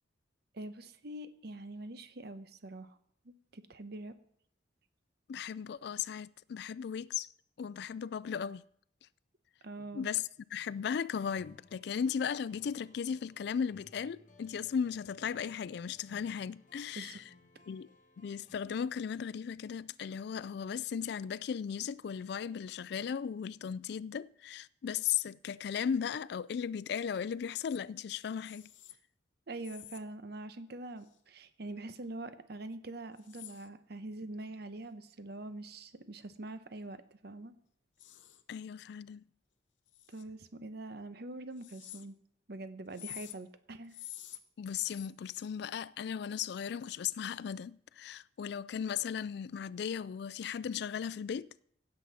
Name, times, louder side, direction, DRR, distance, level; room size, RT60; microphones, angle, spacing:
voice 1, 0.5-3.0 3.2-4.1 9.6-10.1 16.9-17.2 29.5-37.5 40.1-42.2 42.5-44.0, right 2 dB, 60° right, 0.9 m, -44 dB
voice 2, 5.3-7.3 7.6-8.6 9.9-17.2 17.7-17.9 18.2-28.6 38.5-39.2 44.6-51.6, left 7 dB, 60° left, 0.3 m, -36 dB
sound 1, 11.3-18.6, left 2 dB, 45° left, 1.4 m, -62 dB
sound 2, 27.7-27.8 28.4-29.0 29.6-30.0 31.0-31.2 33.2-33.7 38.0-38.4 39.9-40.2 41.6-42.1 42.9-43.4 43.8-44.4 44.9-45.1, left 14 dB, 80° left, 0.8 m, -49 dB
16.5 x 7.7 x 4.2 m
head